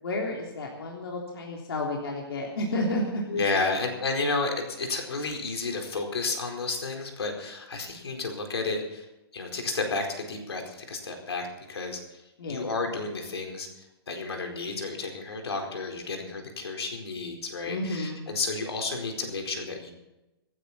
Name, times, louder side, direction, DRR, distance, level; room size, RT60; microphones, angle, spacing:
voice 1, 0.0-3.7 12.4-12.7 17.7-18.2, left 1 dB, 70° left, -1 dB, 3.3 m, -31 dB
voice 2, 3.3-9.1 9.3-12.2 12.5-19.9, left 3 dB, 90° left, 3 dB, 4.5 m, -31 dB
25.5 x 9.9 x 4.3 m, 0.96 s
hypercardioid pair, 165°, 13 cm